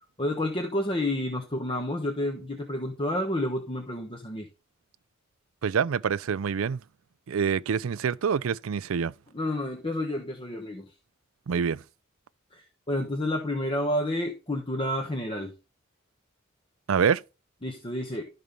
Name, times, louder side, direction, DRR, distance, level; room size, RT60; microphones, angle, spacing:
voice 1, 0.2-4.5 9.3-10.9 12.5-15.5 17.6-18.2, left 1 dB, 25° left, 1.1 m, -30 dB
voice 2, 5.6-6.8 7.3-9.1 11.5-11.8 16.9-17.2, right 6 dB, 75° right, 0.4 m, -26 dB
12.5 x 4.1 x 5.3 m
head